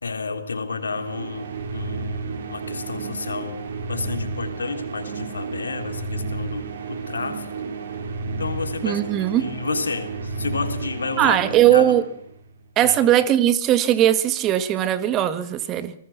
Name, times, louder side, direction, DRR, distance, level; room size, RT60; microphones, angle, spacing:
voice 1, 0.0-7.5 8.4-9.0 9.4-11.4 11.7-11.9 12.8-13.1, left 4 dB, 85° left, 3.4 m, -31 dB
sound 1, 0.7-12.6, right 4 dB, 65° right, 4.9 m, -32 dB
voice 2, 8.8-9.5 11.2-12.0 12.8-16.0, right 11 dB, 30° right, 1.8 m, -19 dB
27.5 x 20.0 x 6.0 m
hypercardioid pair, 120°, 0 cm